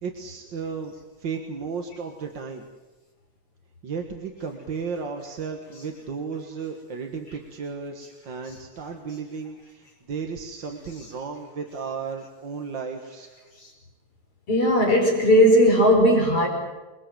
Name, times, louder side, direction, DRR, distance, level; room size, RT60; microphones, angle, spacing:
voice 1, 0.0-2.6 3.8-13.3, right 5 dB, 45° right, 3 dB, 1.9 m, -34 dB
voice 2, 14.5-16.5, equal, 45° left, 1 dB, 5.6 m, -18 dB
28.0 x 21.5 x 7.7 m, 1.2 s
omnidirectional pair, 3.4 m